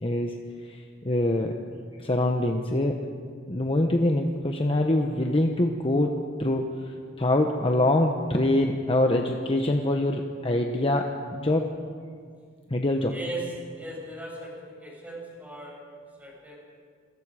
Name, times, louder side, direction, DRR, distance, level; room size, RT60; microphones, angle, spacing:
voice 1, 0.0-0.3 0.7-1.6 2.0-3.1 3.5-11.7 12.7-13.2, left 1 dB, 25° left, 3 dB, 1.1 m, -25 dB
voice 2, 13.1-13.4 13.7-16.7, right 2 dB, 10° right, -3 dB, 6.8 m, -39 dB
28.0 x 22.5 x 5.0 m, 2.1 s
head